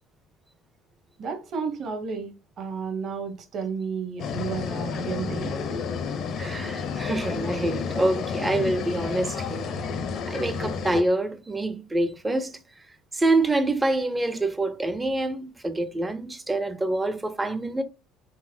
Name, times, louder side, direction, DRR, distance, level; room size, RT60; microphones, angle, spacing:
voice 1, 1.2-5.5, right 5 dB, 45° right, 0.8 m, -32 dB
sound 1, 4.2-11.0, left 5 dB, 45° left, 0.5 m, -31 dB
voice 2, 6.4-9.6 10.3-12.6 13.1-17.8, right 2 dB, 10° right, 0.4 m, -26 dB
3.9 x 2.0 x 2.6 m
cardioid pair, 140°, 0 cm